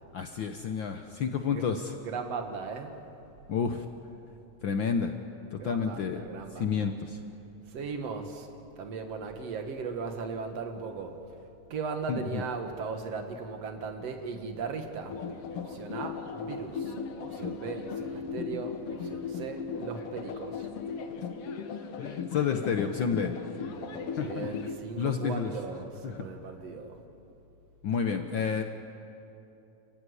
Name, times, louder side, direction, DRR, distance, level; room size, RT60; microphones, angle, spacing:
voice 1, 0.1-1.9 3.5-3.8 4.6-5.1 5.5-6.2 6.6-7.2 12.1-12.4 22.0-23.3 24.2-24.5 25.0-25.5 26.0-26.1 27.8-28.6, left 6 dB, 80° left, 6 dB, 1.1 m, -30 dB
voice 2, 2.0-2.9 5.6-6.9 7.7-8.5 8.8-11.2 11.7-15.2 15.5-20.7 23.6-27.0, right 5 dB, 60° right, 5 dB, 2.7 m, -38 dB
sound 1, 15.1-24.8, left 6 dB, 60° left, 1.8 m, -37 dB
30.0 x 15.0 x 9.7 m, 2.8 s
omnidirectional pair, 3.4 m